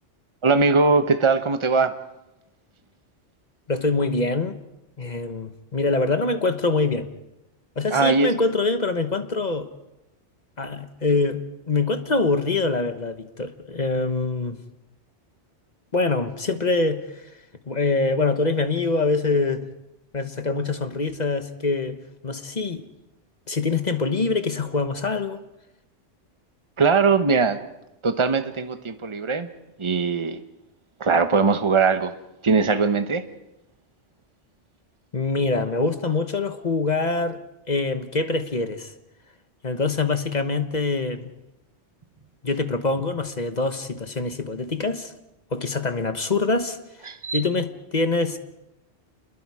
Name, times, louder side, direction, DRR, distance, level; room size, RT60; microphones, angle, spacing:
voice 1, 0.4-1.9 7.9-8.3 26.8-27.6 28.0-29.5 29.8-30.4 31.0-32.1 32.4-33.2 47.1-47.4, right 4 dB, 25° right, 1.0 m, -20 dB
voice 2, 3.7-4.6 5.0-7.1 7.8-9.7 10.6-14.6 15.9-17.3 17.6-19.7 20.1-22.0 22.2-22.9 23.5-25.4 35.1-37.4 37.7-38.9 39.6-41.4 42.4-45.1 45.5-48.4, left 3 dB, 35° left, 1.3 m, -24 dB
28.0 x 21.5 x 4.9 m
omnidirectional pair, 1.2 m